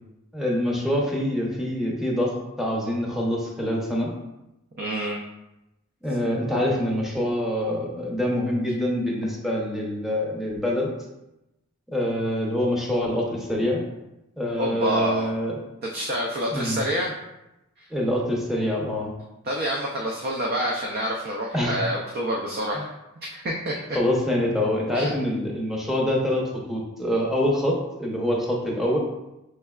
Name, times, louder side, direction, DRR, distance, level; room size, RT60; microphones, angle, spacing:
voice 1, 0.3-4.1 6.0-10.9 11.9-13.8 14.4-15.6 16.5-16.8 17.9-19.1 21.5-21.8 22.7-22.8 23.9-29.0, left 1 dB, ahead, -3 dB, 0.7 m, -25 dB
voice 2, 4.8-5.2 14.6-15.3 15.9-17.1 17.8-17.9 19.4-22.9 23.3-23.7 24.9-25.1, equal, 45° right, -1 dB, 0.5 m, -27 dB
5.4 x 3.2 x 2.3 m, 0.93 s
head